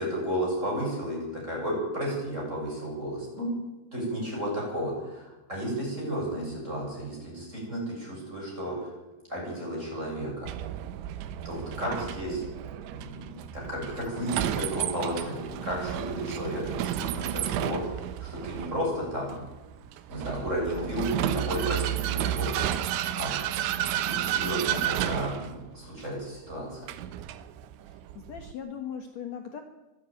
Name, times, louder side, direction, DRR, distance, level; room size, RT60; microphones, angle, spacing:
voice 1, 0.0-3.5 3.9-8.9 9.3-10.5 11.4-12.4 12.9-19.3 20.1-22.8 23.2-23.3 23.7-26.8, equal, 15° right, -3 dB, 8.1 m, -33 dB
Vehicle, 10.5-28.5, right 12 dB, 90° right, 3.4 m, -32 dB
voice 2, 27.9-29.6, left 8 dB, 70° left, 5 dB, 1.7 m, -39 dB
24.5 x 11.5 x 9.2 m, 1.1 s
omnidirectional pair, 5.2 m